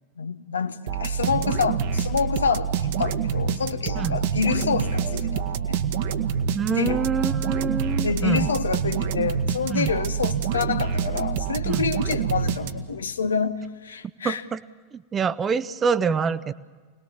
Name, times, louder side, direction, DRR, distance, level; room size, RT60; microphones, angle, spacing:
voice 1, 0.2-5.9 6.7-7.1 8.0-14.4, left 6 dB, 70° left, 0.9 m, -27 dB
sound 1, 0.9-13.1, right 7 dB, 50° right, 1.3 m, -26 dB
voice 2, 6.5-8.5 9.7-9.9 11.6-11.9 14.2-14.6 14.9-16.5, right 6 dB, 20° right, 0.6 m, -25 dB
26.5 x 19.0 x 7.2 m
figure-of-eight pair, 90°, 0 cm